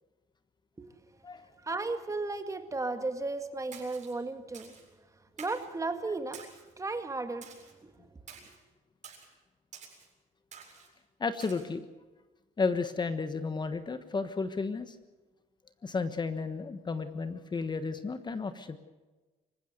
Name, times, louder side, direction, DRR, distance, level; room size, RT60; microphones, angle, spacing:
voice 1, 1.6-4.7 5.4-6.5 6.8-7.5 7.8-7.9, right 3 dB, 20° right, 8 dB, 2.0 m, -34 dB
Splash splatter, 3.7-4.1 4.5-4.9 5.4-5.7 6.3-6.7 7.4-7.7 8.3-8.6 9.0-9.3 9.7-10.1 10.5-10.9 11.4-11.6, right 6 dB, 45° right, 7.7 m, -49 dB
voice 2, 11.2-11.9 12.6-15.0 15.8-18.8, left 4 dB, 25° left, 10 dB, 1.3 m, -33 dB
26.0 x 16.0 x 8.0 m, 1.2 s
cardioid pair, 110°, 17 cm